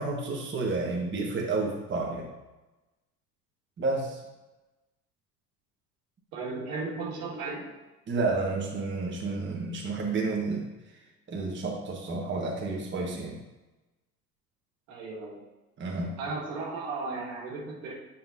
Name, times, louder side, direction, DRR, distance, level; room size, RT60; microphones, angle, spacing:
voice 1, 0.0-2.3 3.8-4.2 8.1-10.6 11.3-13.4 15.8-16.1, right 3 dB, 25° right, -2 dB, 1.4 m, -30 dB
voice 2, 6.3-7.7 14.9-15.4 16.2-17.9, right 3 dB, 65° right, -3 dB, 1.8 m, -35 dB
9.2 x 5.5 x 2.7 m, 1.1 s
figure-of-eight pair, 65°, 45 cm